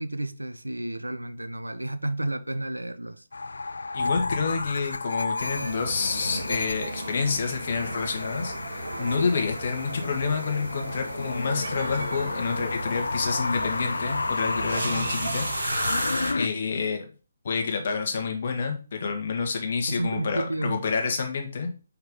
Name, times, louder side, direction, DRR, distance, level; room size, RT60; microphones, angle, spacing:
voice 1, 0.0-3.2 9.1-9.4 19.9-20.8, right 1 dB, 90° right, 0.6 m, -31 dB
sound 1, 3.3-16.5, left 3 dB, 70° left, 0.3 m, -32 dB
voice 2, 3.9-15.5 16.3-17.1 17.4-21.7, left 5 dB, 50° left, 1.7 m, -28 dB
sound 2, 5.4-16.3, right 4 dB, 60° right, 1.1 m, -35 dB
5.6 x 5.6 x 3.7 m
figure-of-eight pair, 140°, 0 cm